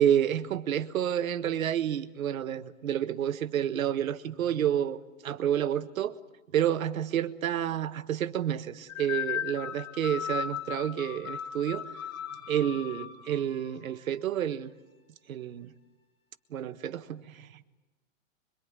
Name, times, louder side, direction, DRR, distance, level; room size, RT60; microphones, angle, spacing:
voice 1, 0.0-6.1 6.5-11.8 12.5-14.7 15.3-15.7 16.5-17.5, right 10 dB, 85° right, 1.5 m, -29 dB
sound 1, 8.9-14.0, left 9 dB, 80° left, 4.1 m, -37 dB
24.0 x 23.0 x 9.6 m
hypercardioid pair, 155°, 40 cm